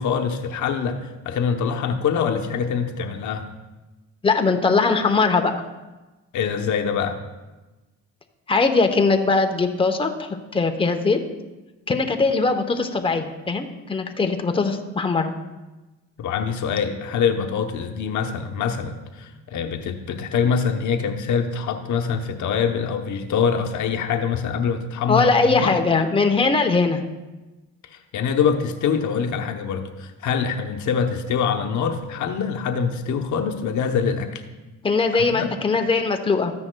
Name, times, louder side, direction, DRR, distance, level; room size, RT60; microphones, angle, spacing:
voice 1, 0.0-3.5 6.3-7.2 16.2-25.8 27.8-34.4 35.3-35.5, left 6 dB, 75° left, 5 dB, 0.8 m, -24 dB
voice 2, 4.2-5.5 8.5-11.2 11.9-15.3 25.1-27.0 34.8-36.5, left 4 dB, 15° left, 6 dB, 0.8 m, -20 dB
13.5 x 9.5 x 2.2 m, 1.1 s
cardioid pair, 90°, 30 cm